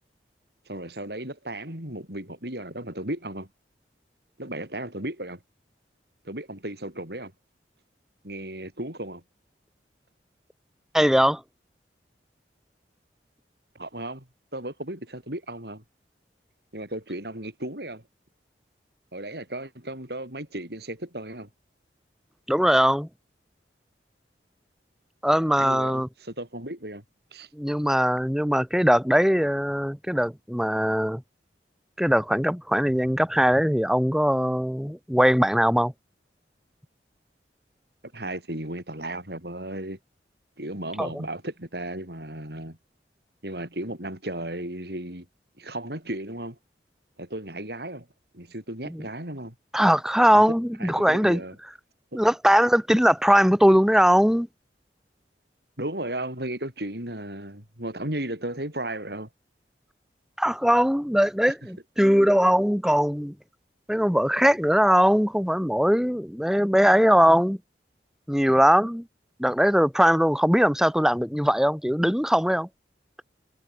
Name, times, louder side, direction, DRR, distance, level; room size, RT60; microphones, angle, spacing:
voice 1, 0.7-3.5 4.4-5.4 6.3-7.3 8.2-9.2 13.8-14.3 14.5-15.8 16.7-18.0 19.1-21.5 25.6-27.0 27.3-27.5 38.1-40.0 40.6-42.8 43.4-45.3 45.6-46.6 47.2-48.1 48.3-49.5 50.8-51.5 52.1-52.2 55.8-59.3, right 1 dB, 65° right, 7.2 m, -35 dB
voice 2, 10.9-11.4 22.5-23.1 25.2-26.1 27.5-31.2 32.0-35.9 41.0-41.2 48.9-49.0 49.7-51.4 52.1-54.5 60.4-63.3 63.9-67.6 68.3-69.0 69.4-72.7, equal, 5° right, 6.2 m, -21 dB
head